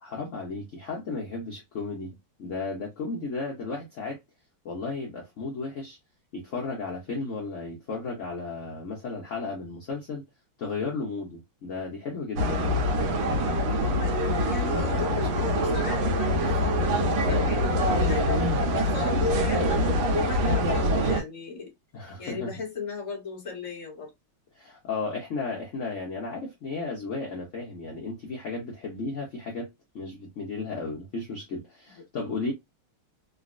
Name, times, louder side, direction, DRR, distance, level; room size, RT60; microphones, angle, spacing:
voice 1, 0.0-4.2 4.6-6.0 6.3-10.2 10.6-12.8 21.9-22.5 24.5-29.7 29.9-32.5, left 3 dB, 65° left, 0.7 m, -34 dB
sound 1, 12.4-21.2, equal, 75° right, 1.8 m, -24 dB
voice 2, 13.7-17.0 17.2-19.8 20.1-21.7 22.2-24.1 31.9-32.0, left 4 dB, 20° left, 0.9 m, -35 dB
3.9 x 2.1 x 2.5 m
omnidirectional pair, 2.4 m